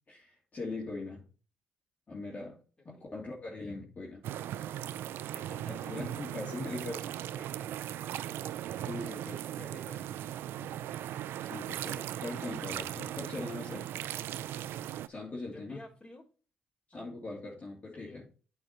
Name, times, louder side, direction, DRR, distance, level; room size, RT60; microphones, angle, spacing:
voice 1, 0.1-1.2 2.1-2.6 2.8-4.3 5.7-7.0 7.3-7.4 8.9-9.4 11.4-13.9 15.1-15.8 16.9-18.2, left 3 dB, 40° left, -4 dB, 2.9 m, -41 dB
voice 2, 2.8-3.2 5.3-6.0 6.6-7.0 9.5-10.0 10.6-10.8 15.5-16.2 16.9-17.1 17.9-18.2, left 1 dB, 20° left, -2 dB, 4.1 m, -52 dB
sound 1, 4.2-15.1, right 11 dB, 75° right, 0.4 m, -38 dB
8.7 x 5.1 x 4.4 m, 0.38 s
supercardioid pair, 55°, 4 cm